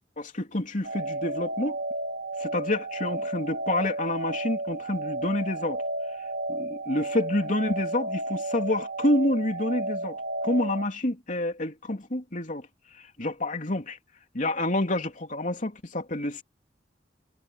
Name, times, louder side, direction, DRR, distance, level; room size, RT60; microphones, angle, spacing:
voice 1, 0.2-1.8 2.4-5.8 6.5-10.2 10.4-12.7 12.9-14.0 14.3-16.4, left 1 dB, 45° left, 3.2 m, -28 dB
sound 1, 0.8-10.8, right 2 dB, 80° right, 2.8 m, -32 dB
head